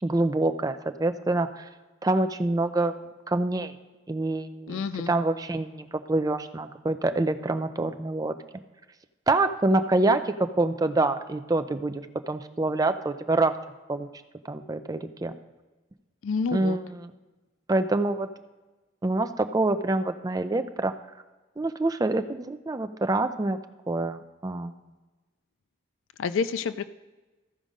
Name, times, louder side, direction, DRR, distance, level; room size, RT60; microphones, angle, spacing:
voice 1, 0.0-1.7 2.0-3.0 3.3-3.7 4.1-4.8 5.1-8.3 9.3-13.5 13.9-14.1 14.5-15.3 16.5-17.1 17.7-18.3 19.0-20.9 21.6-23.6 23.9-24.7, right 2 dB, 20° right, 9 dB, 0.4 m, -26 dB
voice 2, 4.7-5.1 16.2-16.8 26.2-26.9, left 5 dB, 85° left, 13 dB, 0.4 m, -28 dB
14.5 x 5.0 x 5.2 m, 1.2 s
head